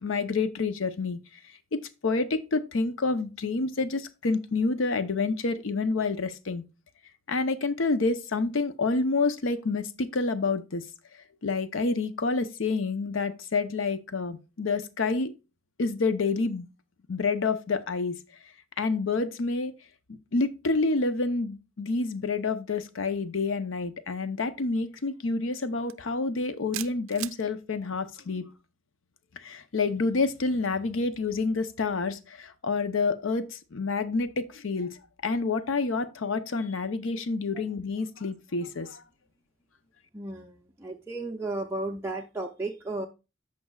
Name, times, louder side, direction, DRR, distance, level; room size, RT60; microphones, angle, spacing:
voice 1, 0.0-1.2 1.7-6.6 7.3-10.8 11.4-15.3 15.8-16.7 17.1-18.2 18.8-19.7 20.1-28.5 29.4-39.0, left 3 dB, 75° left, 0.7 m, -28 dB
sound 1, 25.9-26.1 26.7-27.4, right 16 dB, 85° right, 0.4 m, -36 dB
voice 2, 40.1-43.1, right 2 dB, 10° right, 0.5 m, -34 dB
14.5 x 5.3 x 2.3 m
head